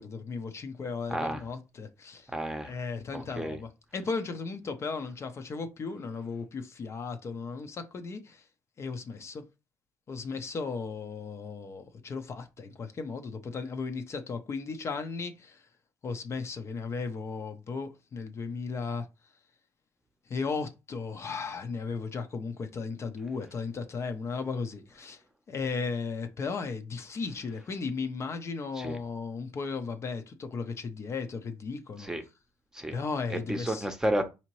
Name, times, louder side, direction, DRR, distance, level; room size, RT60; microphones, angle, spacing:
voice 1, 0.0-2.3 2.6-8.5 8.8-9.4 10.1-15.6 16.0-19.1 20.3-25.2 25.5-32.1 32.9-33.9, left 4 dB, 40° left, 0.7 m, -35 dB
voice 2, 1.1-1.4 2.3-2.8 3.1-3.6 28.7-29.0 32.0-32.2 32.7-32.9 33.3-34.3, right 1 dB, 10° right, 0.8 m, -31 dB
4.9 x 2.8 x 3.1 m
cardioid pair, 95°, 7 cm